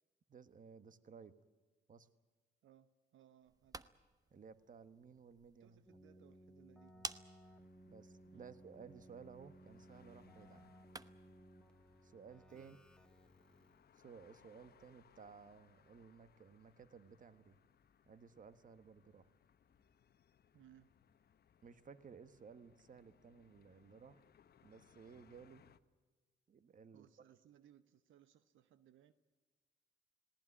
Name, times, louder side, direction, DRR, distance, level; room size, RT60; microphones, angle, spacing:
voice 1, 0.3-1.3 1.9-2.1 4.3-5.8 6.9-7.1 7.9-10.7 12.0-12.8 14.0-17.6 18.1-19.3 21.6-24.3 24.6-25.6 26.5-27.1, right 6 dB, 40° right, 13 dB, 1.3 m, -57 dB
voice 2, 2.6-3.9 5.6-7.0 8.3-8.4 12.5-12.7 20.5-20.9 26.9-29.1, right 11 dB, 75° right, 13 dB, 1.0 m, -66 dB
sound 1, 3.4-11.4, right 3 dB, 20° right, 0.9 m, -54 dB
Keyboard (musical), 5.9-14.0, right 1 dB, 5° left, 1.5 m, -61 dB
sound 2, 7.4-25.8, left 8 dB, 50° left, 1.1 m, -70 dB
19.5 x 18.0 x 9.8 m, 1.3 s
cardioid pair, 90°, 20 cm